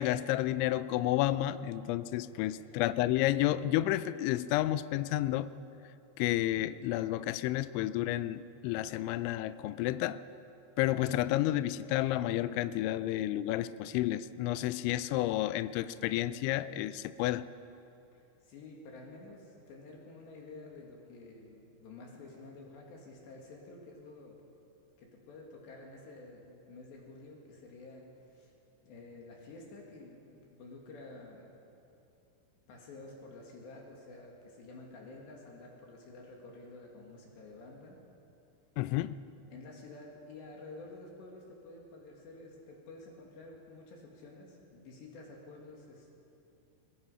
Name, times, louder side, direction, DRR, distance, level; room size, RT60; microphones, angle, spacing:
voice 1, 0.0-5.5 6.2-10.2 10.8-17.5 38.8-39.2, left 14 dB, 80° left, 14 dB, 2.8 m, -31 dB
voice 2, 18.1-24.4 25.0-28.0 28.3-28.5 28.9-31.5 32.7-38.0 39.5-46.1, left 2 dB, 65° left, -1 dB, 4.1 m, -50 dB
22.5 x 20.5 x 5.6 m, 2.7 s
omnidirectional pair, 5.8 m